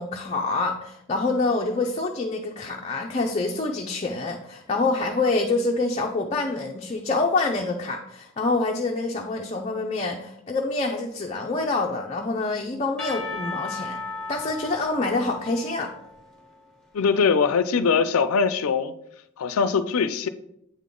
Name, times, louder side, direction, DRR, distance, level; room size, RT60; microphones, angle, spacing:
voice 1, 0.0-14.0 14.3-15.9, left 3 dB, 30° left, 0.5 m, -26 dB
Percussion / Church bell, 13.0-16.9, left 3 dB, 5° left, 1.1 m, -36 dB
voice 2, 16.9-18.9 19.4-20.3, left 5 dB, 90° left, 0.4 m, -22 dB
8.3 x 3.7 x 3.7 m
head